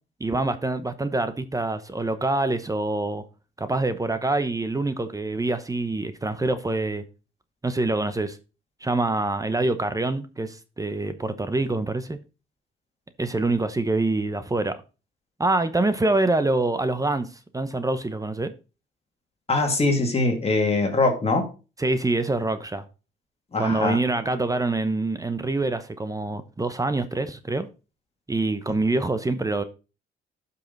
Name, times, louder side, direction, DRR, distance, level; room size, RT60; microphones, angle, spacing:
voice 1, 0.2-3.2 3.6-7.0 7.6-8.4 8.8-12.2 13.2-14.7 15.4-17.3 17.5-18.5 21.8-22.8 23.6-27.7 28.3-29.6, right 2 dB, 15° right, 0.9 m, -25 dB
voice 2, 19.5-21.5 23.5-24.0, left 2 dB, 30° left, 2.5 m, -22 dB
11.5 x 5.7 x 4.0 m
cardioid pair, 90°, 20 cm